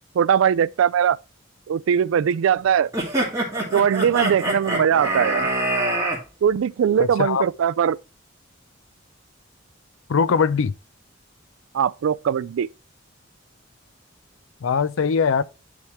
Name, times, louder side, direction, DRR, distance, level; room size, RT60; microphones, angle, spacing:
voice 1, 0.2-1.2 1.7-2.9 3.7-5.5 6.4-8.0 11.7-12.7, right 8 dB, 80° right, 0.3 m, -20 dB
sound 1, 2.9-6.2, right 1 dB, 15° right, 2.2 m, -24 dB
voice 2, 7.0-7.4 10.1-10.7 14.6-15.4, left 6 dB, 85° left, 0.5 m, -21 dB
10.0 x 3.5 x 4.4 m
head